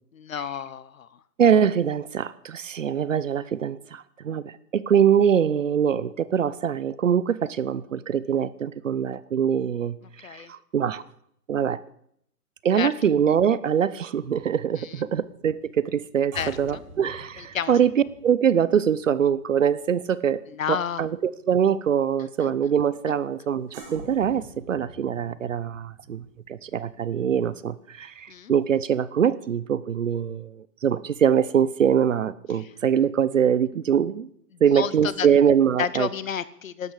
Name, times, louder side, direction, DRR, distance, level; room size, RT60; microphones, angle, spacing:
voice 1, 0.1-1.1 10.2-10.5 12.8-12.9 14.8-15.1 16.3-16.5 17.4-17.8 20.5-21.0 22.4-22.5 28.3-28.5 34.5-35.3 35.8-36.9, left 8 dB, 55° left, 17 dB, 1.0 m, -31 dB
voice 2, 1.4-11.0 11.5-11.8 12.6-20.4 20.7-34.3 34.6-36.1, right 8 dB, 55° right, 18 dB, 0.8 m, -23 dB
sound 1, 14.2-20.8 21.1-21.4 23.7-28.4 28.6-28.8, right 2 dB, 30° right, 4.4 m, -47 dB
12.5 x 10.5 x 8.3 m, 0.69 s
hypercardioid pair, 175°, 47 cm